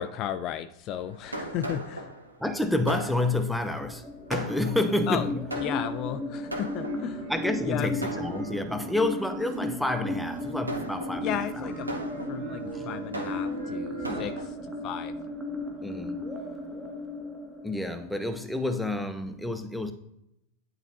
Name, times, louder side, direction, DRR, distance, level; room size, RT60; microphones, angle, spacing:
voice 1, 0.0-2.1 5.1-5.3 5.6-7.2 7.6-7.9 11.2-12.0 12.3-14.3 14.6-15.1, left 10 dB, 35° left, 10 dB, 0.3 m, -34 dB
Fireworks, 0.9-7.4 8.0-8.9 9.5-9.8 10.3-14.5, right 1 dB, 80° right, 1.0 m, -39 dB
voice 2, 2.4-5.5 7.3-11.7 12.6-12.9 13.8-14.3 15.8-16.3 17.6-19.9, left 2 dB, ahead, 7 dB, 0.7 m, -29 dB
sound 1, 3.7-18.6, left 1 dB, 15° right, 1.0 m, -36 dB
sound 2, 6.7-14.3, right 3 dB, 45° right, 1.1 m, -41 dB
10.0 x 4.0 x 2.7 m, 0.82 s
figure-of-eight pair, 90°, 0 cm